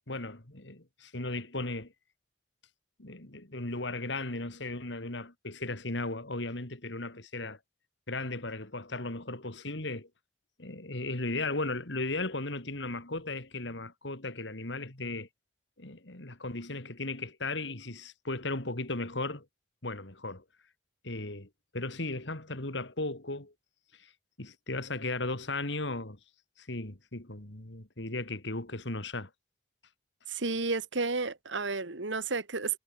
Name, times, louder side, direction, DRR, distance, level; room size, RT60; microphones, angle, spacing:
voice 1, 0.1-1.9 3.0-7.6 8.1-10.1 10.6-15.3 15.8-19.4 19.8-20.4 21.0-23.5 23.9-24.1 24.4-26.2 26.6-29.3, left 2 dB, 75° left, 2.9 m, -36 dB
voice 2, 30.3-32.8, right 3 dB, 80° right, 2.0 m, -32 dB
head